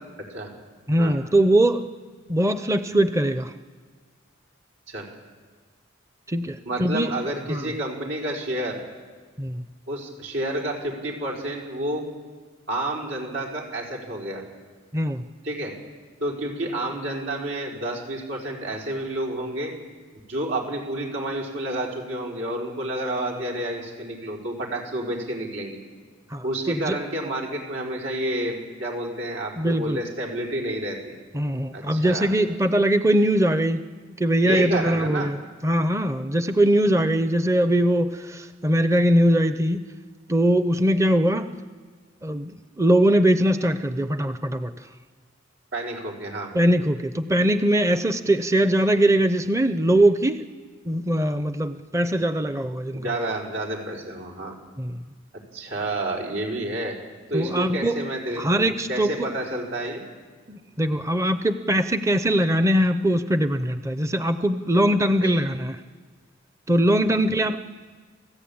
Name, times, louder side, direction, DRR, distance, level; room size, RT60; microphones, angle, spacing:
voice 1, 0.9-1.8 2.3-3.5 6.3-7.1 7.5-7.7 9.4-9.6 14.9-15.2 26.3-27.0 29.6-30.0 31.3-33.9 34.2-35.4 35.6-39.8 40.3-41.5 42.2-42.5 42.8-44.7 46.5-50.4 50.9-53.0 54.8-55.0 57.3-58.0 58.4-59.1 60.5-65.8 66.7-67.6, right 1 dB, 15° right, 10 dB, 0.6 m, -21 dB
voice 2, 6.6-8.8 9.9-12.0 12.7-14.4 15.4-15.7 16.2-19.7 20.3-25.8 26.4-31.2 31.7-32.3 34.4-35.3 45.7-46.5 52.9-54.6 55.5-56.9 57.3-60.0 65.2-65.4 67.0-67.2, right 1 dB, 85° right, -1 dB, 4.9 m, -29 dB
27.5 x 14.5 x 8.7 m, 1.5 s
head